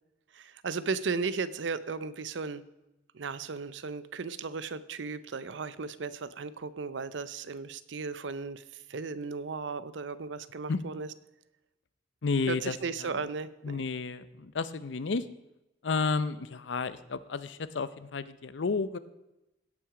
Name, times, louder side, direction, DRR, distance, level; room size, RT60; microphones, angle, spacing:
voice 1, 0.3-2.6 3.1-11.1 12.5-13.8, right 4 dB, 80° right, 15 dB, 0.6 m, -35 dB
voice 2, 12.2-13.2 13.6-15.3 15.8-19.0, left 4 dB, 75° left, 15 dB, 0.6 m, -32 dB
17.0 x 6.1 x 4.9 m, 0.93 s
head